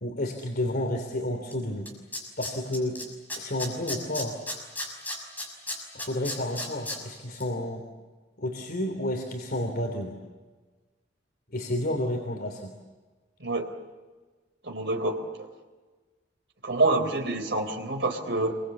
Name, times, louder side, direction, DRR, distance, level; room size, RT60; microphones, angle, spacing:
voice 1, 0.0-1.9 2.4-3.0 3.4-4.3 5.9-7.8 8.4-10.2 11.5-12.7, left 1 dB, 55° left, 2 dB, 3.2 m, -30 dB
Tools, 1.5-1.6 1.9-3.0 3.3-7.0 7.3-7.4, left 1 dB, 10° left, 6.2 m, -33 dB
voice 2, 13.4-13.7 14.6-15.3 16.6-18.5, right 2 dB, 70° right, 4 dB, 3.8 m, -27 dB
28.0 x 23.5 x 8.5 m, 1.3 s
head